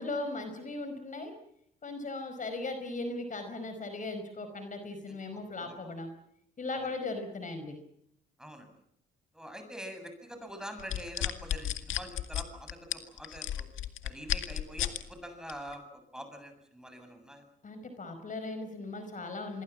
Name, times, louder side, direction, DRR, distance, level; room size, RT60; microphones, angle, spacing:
voice 1, 0.0-1.3 1.8-6.1 6.6-7.8 17.6-19.6, left 2 dB, 40° left, 7 dB, 4.9 m, -38 dB
voice 2, 9.3-13.7 14.0-17.4, equal, 5° right, 7 dB, 7.6 m, -45 dB
sound 1, 10.8-15.0 15.5-15.7, left 11 dB, 80° left, 1.9 m, -33 dB
26.0 x 22.5 x 7.5 m, 0.75 s
cardioid pair, 90°, 20 cm